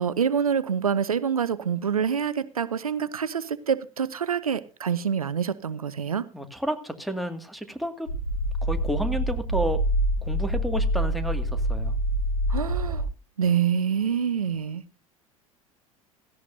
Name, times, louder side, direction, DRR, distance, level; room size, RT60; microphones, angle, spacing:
voice 1, 0.0-6.3 12.5-13.1 13.4-14.8, right 7 dB, 85° right, 0.7 m, -26 dB
voice 2, 6.3-8.1 8.6-9.8 10.2-11.9, right 1 dB, ahead, 2.1 m, -31 dB
sound 1, 8.1-13.0, right 1 dB, 90° left, 5.1 m, -26 dB
17.0 x 14.5 x 2.7 m
figure-of-eight pair, 80°, 18 cm